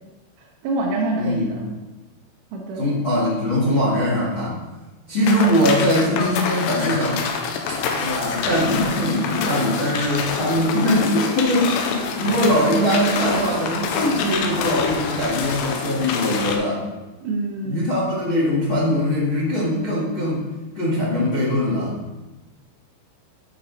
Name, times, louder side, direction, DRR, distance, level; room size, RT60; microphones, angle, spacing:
voice 1, 0.6-1.7 2.5-2.8 5.3-5.4 17.2-17.9, right 2 dB, 75° right, -1 dB, 2.7 m, -26 dB
voice 2, 1.2-1.6 2.7-4.6 5.1-7.2 8.0-16.8 17.6-20.5 20.7-22.0, equal, 45° left, -6 dB, 1.6 m, -21 dB
sound 1, 5.2-16.6, left 5 dB, 80° left, 2.7 m, -26 dB
9.4 x 4.7 x 3.9 m, 1.1 s
omnidirectional pair, 5.3 m